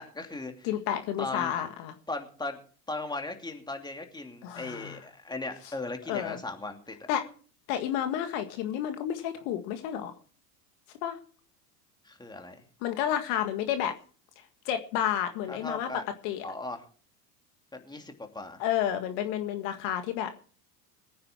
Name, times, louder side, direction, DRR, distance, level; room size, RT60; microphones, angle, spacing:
voice 1, 0.0-0.7 1.2-1.5 2.1-2.6 2.9-7.0 12.0-12.6 15.5-16.0 16.4-16.8 17.7-18.6, left 2 dB, 10° left, 4 dB, 2.8 m, -37 dB
voice 2, 0.6-1.9 4.4-5.0 6.1-6.4 7.1-7.2 7.7-10.1 11.0-11.2 12.8-13.9 14.7-15.9 16.2-16.5 18.6-20.3, left 10 dB, 55° left, 8 dB, 1.9 m, -30 dB
21.0 x 9.5 x 4.5 m, 0.42 s
hypercardioid pair, 100°, 48 cm